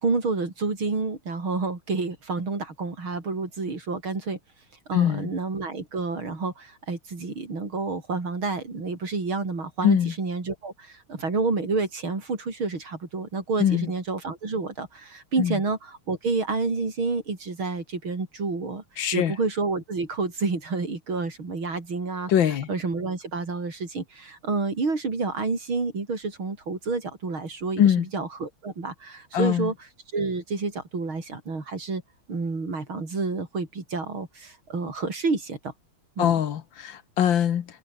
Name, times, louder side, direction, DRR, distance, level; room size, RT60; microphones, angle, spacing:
voice 1, 0.0-4.4 4.9-18.8 19.1-22.3 22.7-29.7 30.1-32.0 32.3-35.7 36.2-36.4, right 3 dB, 75° right, 5.5 m, -29 dB
voice 2, 4.9-5.3 9.8-10.1 13.6-13.9 15.4-15.6 19.0-19.3 22.3-22.7 27.8-28.1 29.3-29.7 36.2-37.8, left 9 dB, 65° left, 1.9 m, -22 dB
omnidirectional pair, 2.3 m